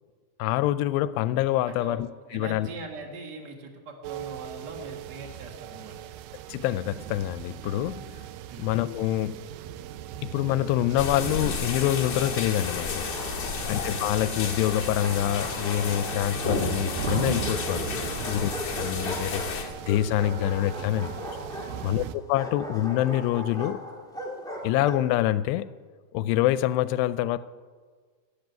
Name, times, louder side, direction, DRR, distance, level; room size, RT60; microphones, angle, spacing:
voice 1, 0.4-2.1 2.3-2.7 6.5-8.1 8.6-9.5 10.2-13.1 13.7-17.9 18.3-21.1 21.6-23.8 24.6-25.7 26.1-27.4, left 13 dB, 85° left, 2.7 m, -26 dB
voice 2, 2.3-5.9 8.5-8.7 13.4-13.7 18.1-18.4 21.6-22.0, right 3 dB, 65° right, 1.0 m, -42 dB
sound 1, 4.0-22.2, right 11 dB, 85° right, 2.0 m, -38 dB
sound 2, 11.0-19.6, left 5 dB, 40° left, 1.5 m, -32 dB
Bark, 12.9-13.8 14.7-16.3 17.0-25.1, equal, 5° left, 0.5 m, -38 dB
13.5 x 10.5 x 9.1 m
omnidirectional pair, 4.8 m